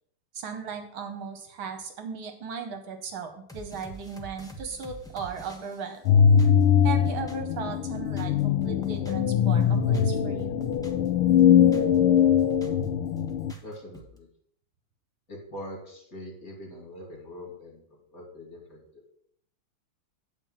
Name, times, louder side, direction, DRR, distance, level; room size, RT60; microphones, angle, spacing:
voice 1, 0.3-6.1 6.8-10.6, right 6 dB, 70° right, 6 dB, 1.7 m, -37 dB
sound 1, 3.5-7.5 7.8-9.3 9.6-11.1 11.4-12.8 13.2-14.2, right 1 dB, 5° left, 0.6 m, -47 dB
sound 2, 6.0-13.5, left 8 dB, 80° left, 1.4 m, -21 dB
voice 2, 13.6-14.3 15.3-17.8 18.1-19.2, left 1 dB, 40° left, -2 dB, 3.2 m, -43 dB
8.9 x 4.4 x 7.2 m, 0.68 s
omnidirectional pair, 2.4 m